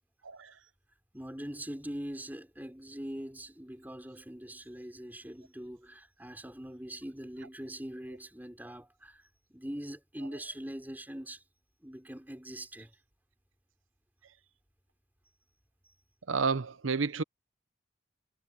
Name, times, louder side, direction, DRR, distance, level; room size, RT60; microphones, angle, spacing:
voice 1, 1.1-9.2 9.5-11.4 11.8-12.9, right 1 dB, 10° right, 5.2 m, -42 dB
voice 2, 16.3-17.2, right 4 dB, 85° right, 0.8 m, -30 dB
head